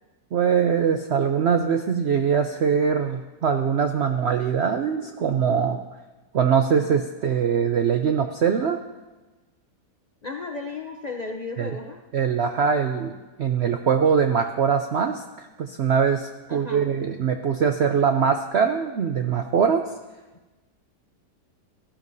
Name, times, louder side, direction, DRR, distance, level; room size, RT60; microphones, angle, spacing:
voice 1, 0.3-5.8 6.3-8.8 11.6-11.7 12.1-19.8, right 7 dB, 75° right, 5 dB, 0.6 m, -22 dB
voice 2, 10.2-12.0 16.5-16.8, left 3 dB, 45° left, 1 dB, 0.5 m, -34 dB
15.5 x 12.5 x 2.7 m, 1.2 s
omnidirectional pair, 1.8 m